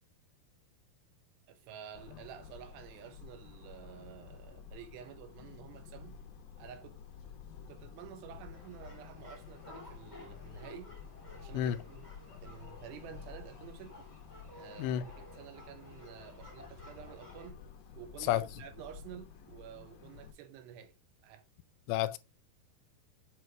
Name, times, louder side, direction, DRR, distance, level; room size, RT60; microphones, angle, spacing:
voice 1, 1.5-6.2 6.6-7.0 7.7-10.9 11.4-12.1 12.4-14.1 14.5-17.7 18.0-20.9 21.2-21.4, right 9 dB, 80° right, 2.8 m, -50 dB
sound 1, 1.9-20.3, left 7 dB, 70° left, 2.4 m, -51 dB
sound 2, 8.5-17.5, left 1 dB, 35° left, 0.6 m, -54 dB
voice 2, 11.5-11.8 14.8-15.1 18.3-18.4 21.9-22.2, left 12 dB, 90° left, 2.8 m, -30 dB
7.8 x 3.1 x 4.4 m
omnidirectional pair, 5.0 m